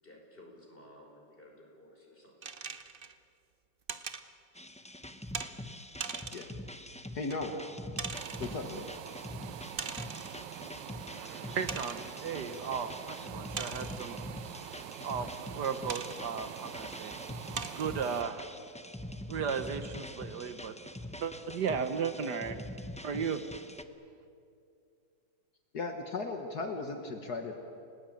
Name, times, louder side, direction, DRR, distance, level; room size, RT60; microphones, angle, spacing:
voice 1, 0.0-2.7 14.3-14.4, left 1 dB, 30° left, 0 dB, 5.6 m, -55 dB
sound 1, 2.4-3.1 3.9-4.3 5.3-5.5 6.0-6.6 7.3-7.4 8.0-8.6 9.8-10.4 10.9-11.0 11.7-12.1 13.6-14.2 15.9-16.2 16.9-17.0 17.6-17.9, right 5 dB, 35° right, 0.9 m, -40 dB
sound 2, 4.5-23.8, left 1 dB, 10° left, 0.4 m, -44 dB
voice 2, 6.3-6.6 7.1-7.6 8.4-8.9 25.7-27.5, left 3 dB, 60° left, 4 dB, 2.1 m, -36 dB
sound 3, 8.1-18.2, right 10 dB, 80° right, 1.5 m, -45 dB
voice 3, 11.1-14.2 15.0-17.1 17.8-18.5 19.3-20.8 21.2-22.6 23.0-23.4, right 6 dB, 65° right, 10 dB, 1.6 m, -35 dB
29.0 x 18.5 x 9.0 m, 2.4 s
omnidirectional pair, 2.0 m